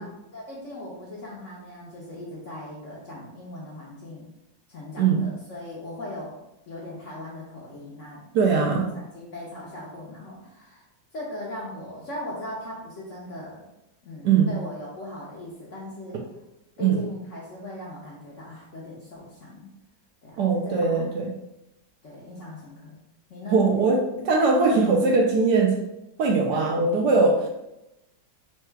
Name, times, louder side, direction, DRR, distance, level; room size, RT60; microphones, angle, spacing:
voice 1, 0.0-4.3 4.7-6.4 6.7-8.2 8.6-10.8 11.1-13.7 14.0-16.2 16.8-19.7 20.2-20.4 20.6-21.1 22.0-23.0 23.3-23.6 26.5-26.8, left 1 dB, 55° left, -4 dB, 0.9 m, -39 dB
voice 2, 8.3-8.8 14.2-14.5 16.8-17.0 20.4-21.3 23.5-25.8 26.2-27.5, right 4 dB, 70° right, 0 dB, 1.1 m, -21 dB
4.5 x 2.3 x 4.5 m, 0.91 s
omnidirectional pair, 2.1 m